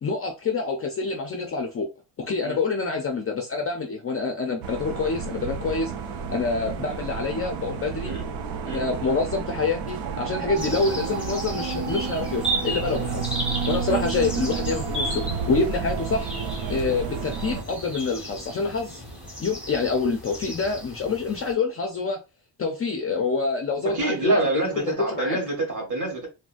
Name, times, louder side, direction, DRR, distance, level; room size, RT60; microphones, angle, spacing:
voice 1, 0.0-1.9 2.2-5.9 6.3-8.1 8.6-13.4 13.7-16.3 16.7-19.0 19.4-22.2 22.6-25.4, left 4 dB, 30° left, 0.4 m, -27 dB
sound 1, 4.6-17.6, right 6 dB, 85° right, 0.7 m, -31 dB
sound 2, 8.0-21.2, left 1 dB, 70° right, 1.5 m, -46 dB
sound 3, 10.6-21.5, right 1 dB, ahead, 0.9 m, -35 dB
voice 2, 23.8-26.3, right 2 dB, 40° right, 1.8 m, -27 dB
3.8 x 2.1 x 2.4 m
cardioid pair, 165°, 46 cm